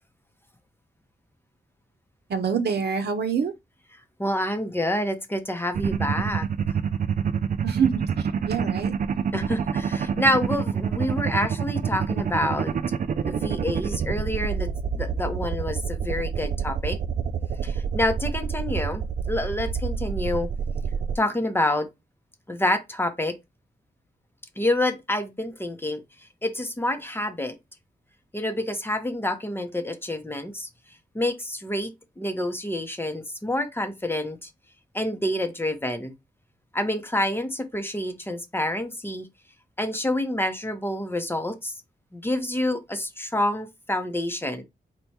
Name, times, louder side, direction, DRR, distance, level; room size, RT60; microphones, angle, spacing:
voice 1, 2.3-3.5 7.6-8.9, right 6 dB, 80° right, 0.9 m, -26 dB
voice 2, 4.2-6.5 9.3-12.7 13.3-17.0 17.6-20.5 21.1-21.9 22.5-23.4 24.6-26.0 26.4-27.6 28.3-30.7 31.1-34.5 34.9-36.1 36.7-39.3 39.8-41.8 42.1-44.6, left 1 dB, 15° left, 0.7 m, -27 dB
sound 1, 5.7-21.2, right 7 dB, 55° right, 0.4 m, -27 dB
4.5 x 2.3 x 4.1 m
wide cardioid pair, 135°, 17 cm